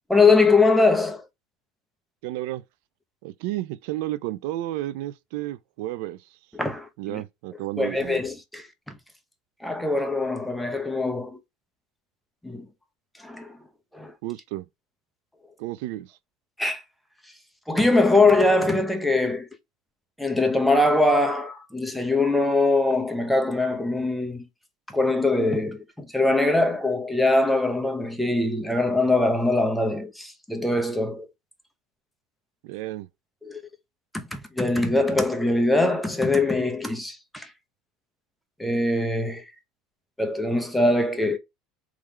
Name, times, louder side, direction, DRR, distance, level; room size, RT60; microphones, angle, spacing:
voice 1, 0.1-1.2 6.5-7.2 7.8-9.0 9.6-11.4 12.4-12.7 13.2-13.6 13.9-14.1 16.6-16.8 17.7-19.5 20.2-24.4 24.9-31.3 33.4-33.6 34.1-37.5 38.6-39.5 40.2-41.4, left 2 dB, ahead, 0.9 m, -22 dB
voice 2, 2.2-2.6 3.2-6.4 7.0-8.2 14.2-14.7 15.6-16.2 32.6-33.1, right 16 dB, 75° right, 0.4 m, -32 dB
3.6 x 3.2 x 4.4 m
supercardioid pair, 125°, 0 cm